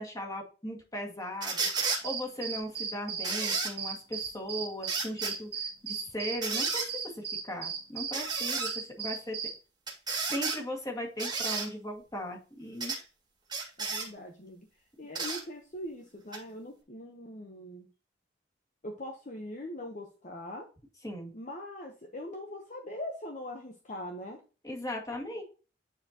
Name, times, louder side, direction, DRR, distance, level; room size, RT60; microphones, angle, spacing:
voice 1, 0.0-1.7 2.0-9.5 10.3-12.9 21.0-21.3 24.6-25.4, equal, 20° left, 0 dB, 1.9 m, -38 dB
sound 1, 1.4-2.0 3.2-3.7 4.9-5.3 6.4-6.9 8.1-8.7 9.9-10.6 11.2-11.7 12.8-13.0 13.5-14.1 15.1-15.4 16.3-16.4, right 4 dB, 25° right, 1.9 m, -32 dB
sound 2, 2.0-9.6, right 6 dB, 60° right, 1.6 m, -36 dB
voice 2, 13.8-14.7 15.0-17.9 18.8-20.7 21.3-24.4, left 1 dB, 40° left, 2 dB, 0.9 m, -41 dB
9.5 x 4.4 x 2.9 m, 0.34 s
head